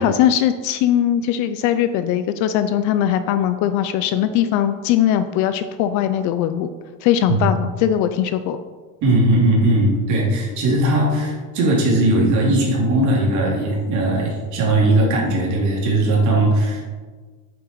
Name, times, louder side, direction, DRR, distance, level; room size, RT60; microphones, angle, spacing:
voice 1, 0.0-6.7 7.0-8.6, left 10 dB, 45° left, 11 dB, 0.5 m, -20 dB
voice 2, 9.0-16.8, right 1 dB, 45° right, -3 dB, 3.1 m, -18 dB
8.7 x 7.2 x 4.6 m, 1.4 s
cardioid pair, 170°, 41 cm